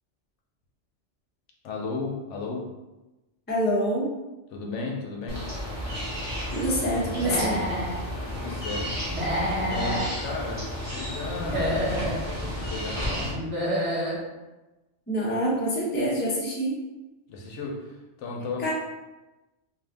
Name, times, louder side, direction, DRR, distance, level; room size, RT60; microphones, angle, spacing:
voice 1, 1.6-2.7 4.5-5.4 8.3-9.0 9.7-13.5 17.3-18.7, left 3 dB, 80° left, -1 dB, 0.9 m, -34 dB
voice 2, 3.5-4.1 6.5-7.6 15.1-16.7 18.6-18.7, equal, 15° left, -5 dB, 0.5 m, -26 dB
sound 1, 5.3-13.3, left 1 dB, 15° right, 0.7 m, -32 dB
Human voice / Animal, 7.1-7.9 9.1-10.1 11.3-12.2 13.3-14.2, equal, 60° right, 1.3 m, -28 dB
2.5 x 2.4 x 3.4 m, 1.1 s
omnidirectional pair, 1.2 m